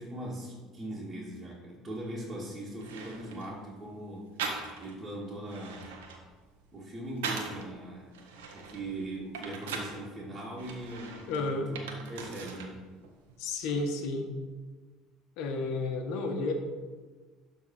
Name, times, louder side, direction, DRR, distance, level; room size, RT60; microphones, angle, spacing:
voice 1, 0.0-5.9 6.7-8.2 8.5-12.8, right 1 dB, 25° right, -7 dB, 2.7 m, -40 dB
sound 1, 2.3-2.4 2.8-3.6 4.4-5.0 5.4-7.7 8.1-10.0 10.6-12.7 13.0-13.8, right 5 dB, 85° right, 1.3 m, -40 dB
voice 2, 11.3-11.7 13.4-14.3 15.4-16.5, left 3 dB, 70° left, 5 dB, 1.3 m, -31 dB
12.0 x 4.1 x 5.9 m, 1.4 s
hypercardioid pair, 75°, 0 cm